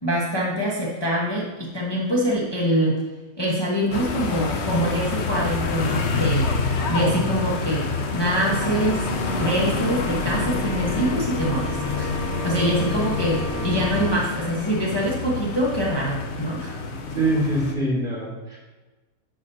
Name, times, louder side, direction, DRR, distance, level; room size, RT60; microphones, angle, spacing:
voice 1, 0.0-3.0 3.4-6.5 6.9-9.1 9.4-12.1 12.4-16.7, equal, 20° left, -5 dB, 1.1 m, -24 dB
sound 1, 3.9-17.7, left 4 dB, 55° left, 0.9 m, -28 dB
Organ, 8.3-14.1, left 1 dB, 80° left, 2.1 m, -30 dB
voice 2, 17.1-18.6, right 1 dB, 35° right, -5 dB, 2.4 m, -23 dB
11.0 x 6.2 x 2.8 m, 1.2 s
omnidirectional pair, 1.6 m